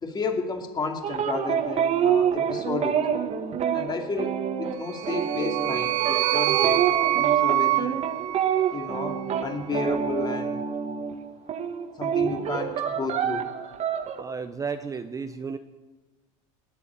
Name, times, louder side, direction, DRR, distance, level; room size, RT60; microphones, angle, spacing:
voice 1, 0.0-3.0 3.7-8.0 8.7-10.6 12.0-13.5, left 4 dB, 25° left, 4 dB, 2.6 m, -32 dB
sound 1, 1.0-11.2 11.5-14.2, right 8 dB, 40° right, 1.6 m, -27 dB
sound 2, 4.8-9.2, right 15 dB, 80° right, 1.2 m, -26 dB
voice 2, 14.2-15.6, right 5 dB, 20° right, 9 dB, 0.7 m, -33 dB
18.5 x 8.2 x 9.5 m, 1.2 s
supercardioid pair, 105°, 17 cm